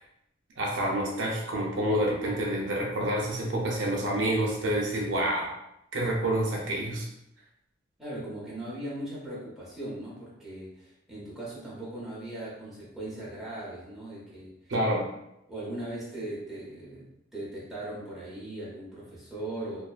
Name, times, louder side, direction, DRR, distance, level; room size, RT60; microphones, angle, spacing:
voice 1, 0.6-5.5 5.9-7.1 14.7-15.1, right 1 dB, 70° right, -2 dB, 0.5 m, -28 dB
voice 2, 8.0-14.7 15.5-19.8, right 1 dB, ahead, -9 dB, 0.8 m, -39 dB
2.5 x 2.1 x 2.3 m, 0.86 s
head